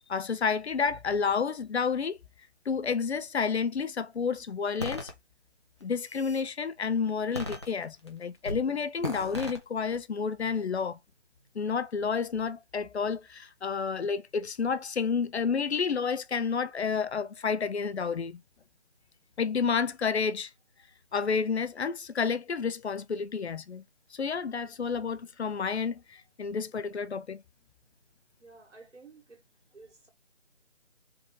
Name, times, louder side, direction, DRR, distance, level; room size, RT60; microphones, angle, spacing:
voice 1, 0.1-2.2 2.7-5.1 5.8-11.0 11.5-18.4 19.4-20.5 21.1-23.8 24.1-27.4, left 5 dB, 65° left, 0.6 m, -30 dB
sound 1, 4.8-5.1 5.8-6.5 7.3-8.1 8.4-8.7 9.0-9.6, left 1 dB, 25° left, 0.6 m, -36 dB
voice 2, 28.4-29.4 29.7-30.1, right 3 dB, 80° right, 1.8 m, -53 dB
3.4 x 2.7 x 4.7 m
figure-of-eight pair, 165°, 35 cm